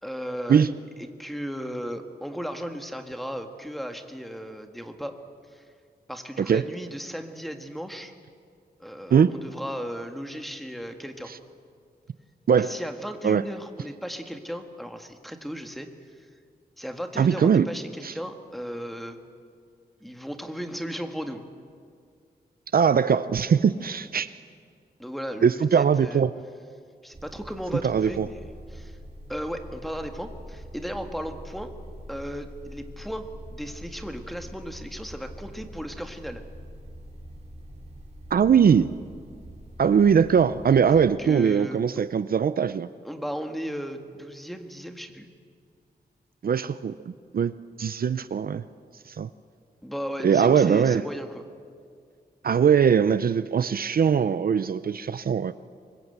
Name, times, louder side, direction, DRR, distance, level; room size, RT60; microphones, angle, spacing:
voice 1, 0.0-0.7 1.0-5.1 5.5-5.6 6.1-8.1 8.8-11.3 12.6-15.9 16.2-16.3 16.8-19.2 20.0-21.4 25.0-26.2 27.0-28.4 28.7-29.0 29.3-31.7 32.1-36.4 40.9-41.8 43.0-45.3 49.8-51.5, equal, ahead, 6 dB, 1.6 m, -36 dB
voice 2, 17.2-17.7 18.0-18.1 22.7-24.3 25.4-26.3 27.8-28.3 38.3-38.9 39.8-42.9 46.4-47.0 47.3-47.5 47.8-48.6 49.1-49.3 50.2-51.1 52.4-55.5, right 7 dB, 60° right, 14 dB, 0.5 m, -21 dB
sound 1, 27.1-41.1, equal, 40° right, 3.0 m, -44 dB
24.5 x 21.5 x 8.1 m, 2.2 s
wide cardioid pair, 130°, 17 cm